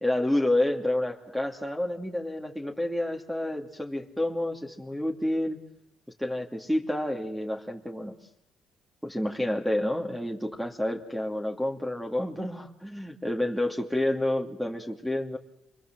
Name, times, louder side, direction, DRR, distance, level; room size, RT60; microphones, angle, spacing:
voice 1, 0.0-5.6 6.2-8.1 9.0-15.4, left 1 dB, ahead, 2 dB, 2.9 m, -29 dB
27.5 x 22.0 x 7.8 m, 0.79 s
cardioid pair, 80°, 0 cm